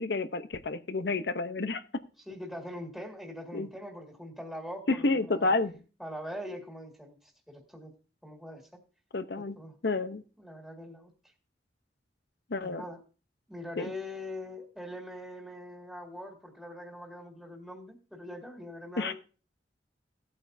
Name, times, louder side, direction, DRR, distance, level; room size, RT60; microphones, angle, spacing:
voice 1, 0.0-1.8 3.5-3.7 4.9-5.7 9.1-9.6 9.8-10.2 12.5-12.8 13.8-13.9 19.0-19.1, left 3 dB, 65° left, 11 dB, 0.8 m, -29 dB
voice 2, 2.3-5.5 6.0-7.9 8.2-8.8 9.4-9.7 10.4-11.1 12.6-13.0 13.5-19.1, left 1 dB, ahead, -1 dB, 2.0 m, -42 dB
17.0 x 8.8 x 2.7 m, 0.35 s
head